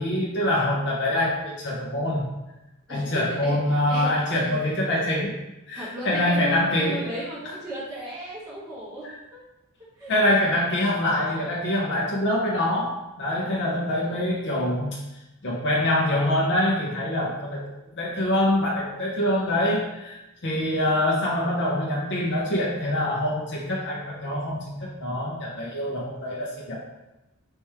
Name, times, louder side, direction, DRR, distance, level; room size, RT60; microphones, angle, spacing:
voice 1, 0.0-2.2 2.9-5.3 5.7-7.1 9.0-9.1 10.1-12.9 13.2-15.0 15.4-17.6 18.0-26.8, left 1 dB, 55° left, -4 dB, 0.8 m, -25 dB
voice 2, 2.9-4.9 5.7-9.4 9.9-10.1 13.9-14.4, right 1 dB, 20° right, -8 dB, 1.5 m, -36 dB
4.3 x 3.2 x 3.5 m, 1.0 s
head